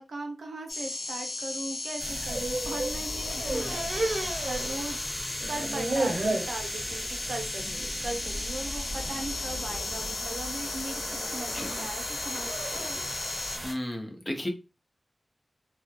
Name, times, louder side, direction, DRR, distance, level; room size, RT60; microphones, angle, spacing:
voice 1, 0.0-5.0 5.5-12.9, right 2 dB, 85° right, 4 dB, 0.6 m, -39 dB
sound 1, 0.7-13.6, left 2 dB, 60° left, 0.5 m, -36 dB
sound 2, 2.0-13.7, equal, ahead, 1.1 m, -37 dB
sound 3, 2.0-3.0 3.2-5.1 5.4-6.6 7.0-7.4 7.7-7.9 8.7-9.1 9.7-10.1 10.9-13.1, right 2 dB, 50° right, 0.6 m, -34 dB
voice 2, 3.3-3.8 11.5-11.7 13.6-14.5, left 1 dB, 20° left, 3 dB, 0.6 m, -35 dB
2.3 x 2.1 x 2.8 m, 0.28 s
wide cardioid pair, 105°, 0 cm